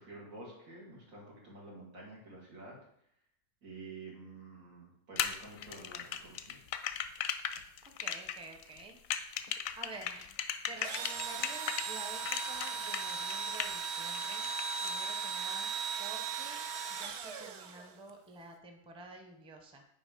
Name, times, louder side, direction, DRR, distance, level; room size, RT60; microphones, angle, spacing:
voice 1, 0.0-2.8 3.6-6.6, right 2 dB, 90° right, -4 dB, 2.5 m, -49 dB
sound 1, 5.2-11.9 12.2-13.8 14.1-14.9, left 9 dB, 85° left, 1.0 m, -36 dB
voice 2, 7.8-9.5 9.7-10.4 10.7-14.5 14.8-15.7 16.0-16.6 17.0-19.8, right 3 dB, 5° right, 4 dB, 0.5 m, -50 dB
Engine / Drill, 10.8-18.1, right 5 dB, 60° right, 0.8 m, -38 dB
8.9 x 3.1 x 5.0 m, 0.74 s
omnidirectional pair, 1.4 m